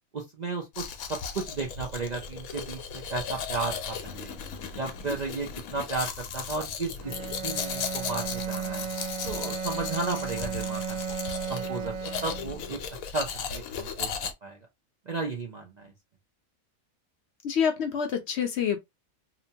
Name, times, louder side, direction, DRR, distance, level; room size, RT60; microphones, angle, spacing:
voice 1, 0.1-4.4 4.8-7.2 7.4-8.9 9.2-11.0 11.5-14.1 14.4-14.6 15.1-15.9, right 3 dB, 60° right, 0.4 m, -34 dB
Domestic sounds home sounds, 0.7-14.3, left 6 dB, 90° left, 1.0 m, -36 dB
Bowed string instrument, 7.0-12.8, right 7 dB, 80° right, 1.0 m, -35 dB
voice 2, 17.4-18.8, left 7 dB, 65° left, 0.7 m, -27 dB
2.8 x 2.2 x 2.6 m
omnidirectional pair, 1.4 m